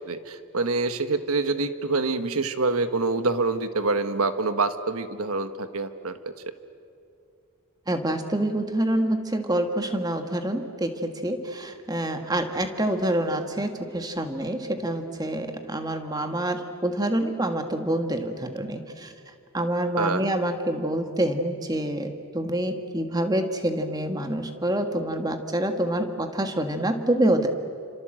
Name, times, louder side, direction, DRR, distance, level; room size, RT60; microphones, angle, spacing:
voice 1, 0.1-6.3 20.0-20.3, right 3 dB, 80° right, 10 dB, 1.5 m, -26 dB
voice 2, 7.9-19.1 19.5-27.5, right 1 dB, 15° right, 6 dB, 1.7 m, -27 dB
28.5 x 26.0 x 7.8 m, 2.5 s
head